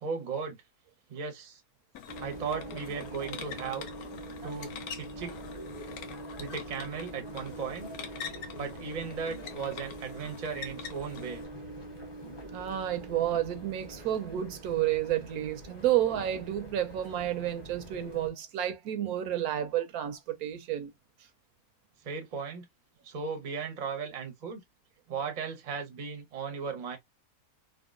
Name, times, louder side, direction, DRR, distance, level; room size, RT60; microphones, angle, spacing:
voice 1, 0.0-0.6 1.1-1.6 2.2-3.9 4.4-5.4 6.4-7.9 8.6-11.4 22.0-22.6 23.0-24.6 25.1-27.0, right 5 dB, 40° right, 0.6 m, -36 dB
sound 1, 1.9-11.4, left 7 dB, 75° left, 1.1 m, -45 dB
sound 2, 2.1-18.3, right 1 dB, 25° left, 0.7 m, -44 dB
voice 2, 12.5-20.9, right 12 dB, 75° right, 1.0 m, -30 dB
3.5 x 2.1 x 2.4 m
omnidirectional pair, 1.6 m